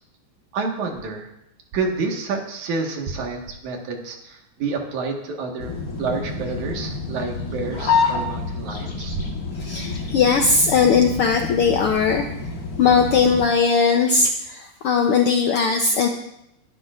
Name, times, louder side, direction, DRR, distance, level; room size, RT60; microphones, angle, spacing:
voice 1, 0.5-1.3 1.7-5.7 6.0-9.2, right 4 dB, 75° right, 1 dB, 3.1 m, -28 dB
sound 1, 5.6-13.5, left 4 dB, 40° left, 1.5 m, -28 dB
voice 2, 9.6-12.2 12.8-16.1, left 5 dB, 75° left, 3 dB, 1.3 m, -19 dB
22.0 x 11.0 x 2.5 m, 0.81 s
omnidirectional pair, 3.4 m